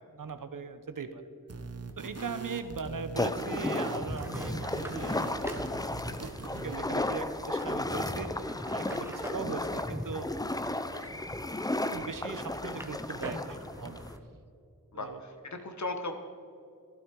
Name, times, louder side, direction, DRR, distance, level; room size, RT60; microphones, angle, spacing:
voice 1, 0.1-1.2 2.0-8.3 8.7-10.3 10.7-11.2 11.7-14.0 14.9-15.2 15.5-15.7, right 5 dB, 70° right, 10 dB, 0.9 m, -40 dB
sound 1, 1.5-6.9, right 3 dB, 45° right, 1.1 m, -42 dB
sound 2, 3.2-14.2, left 2 dB, 10° left, 0.6 m, -34 dB
sound 3, 4.0-14.2, equal, 5° right, 1.2 m, -45 dB
voice 2, 14.9-16.1, left 2 dB, 55° left, 6 dB, 1.5 m, -37 dB
12.0 x 12.0 x 4.7 m, 2.5 s
cardioid pair, 40°, 34 cm